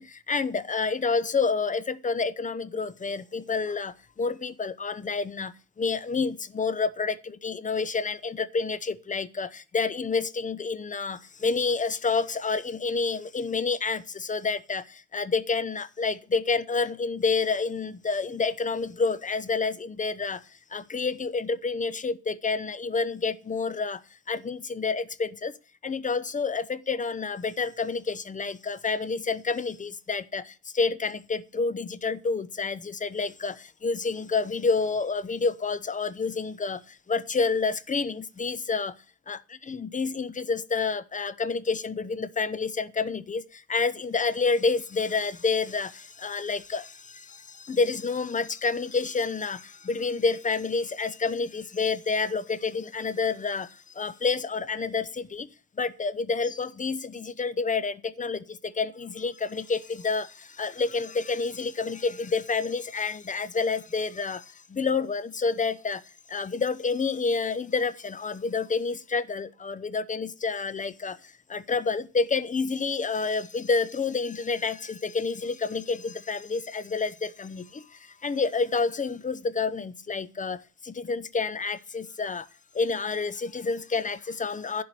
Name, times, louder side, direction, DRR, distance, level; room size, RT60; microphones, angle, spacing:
voice 1, 0.0-5.5 5.8-20.4 20.7-24.0 24.3-25.5 25.8-36.8 37.1-38.9 39.3-53.7 54.0-55.5 55.8-64.4 64.7-66.0 66.3-71.2 71.5-77.8 78.2-80.6 80.8-82.4 82.7-84.8, left 4 dB, 25° left, 0.7 m, -29 dB
11.5 x 4.8 x 7.9 m
cardioid pair, 90°, 30 cm